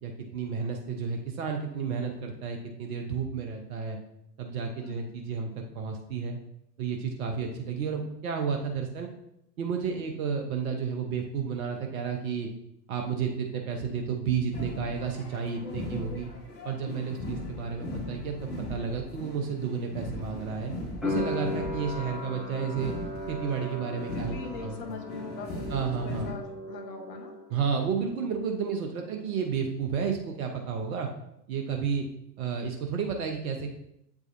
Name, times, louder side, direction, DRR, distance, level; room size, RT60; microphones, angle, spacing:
voice 1, 0.0-4.0 4.4-6.4 6.8-9.1 9.6-12.5 12.9-16.3 16.6-18.4 18.7-20.7 21.0-22.9 23.3-25.0 25.7-26.3 27.5-31.1 31.5-32.0 32.4-33.7, right 6 dB, 55° right, 3 dB, 0.9 m, -31 dB
voice 2, 4.8-5.1 15.6-16.3 24.1-27.3, left 4 dB, 35° left, 3 dB, 1.1 m, -42 dB
sound 1, 14.5-26.3, left 1 dB, 65° left, 1.5 m, -39 dB
sound 2, 21.0-27.8 28.1-29.0, left 2 dB, ahead, 0.4 m, -37 dB
7.7 x 4.9 x 2.6 m, 0.78 s
figure-of-eight pair, 85°, 50 cm